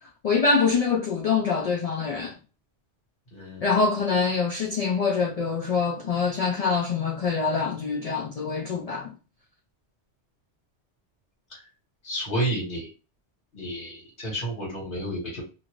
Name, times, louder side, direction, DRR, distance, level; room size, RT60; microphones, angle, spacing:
voice 1, 0.0-2.3 3.6-9.1, left 5 dB, 70° left, 0.3 m, -25 dB
voice 2, 3.3-3.7 11.5-11.7 12.0-12.9 13.5-15.4, right 1 dB, 55° left, 1.5 m, -31 dB
2.6 x 2.5 x 3.0 m
omnidirectional pair, 1.2 m